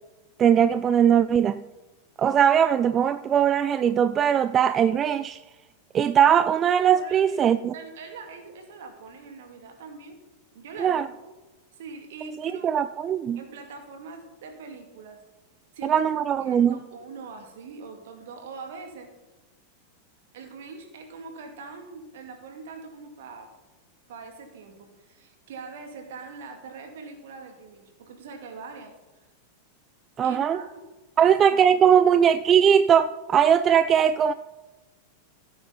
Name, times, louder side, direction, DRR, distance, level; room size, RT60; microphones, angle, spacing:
voice 1, 0.4-1.6 2.2-5.4 5.9-7.7 10.8-11.1 12.4-13.4 15.8-16.8 30.2-30.6 31.2-34.3, right 8 dB, 25° right, 0.4 m, -20 dB
voice 2, 7.0-10.2 10.5-11.3 11.8-12.9 13.4-15.2 15.7-16.0 16.4-19.1 20.3-23.5 24.1-28.9 30.2-30.8 31.2-32.2, right 4 dB, 55° right, 2.4 m, -42 dB
15.5 x 8.8 x 4.0 m
figure-of-eight pair, 90°, 0 cm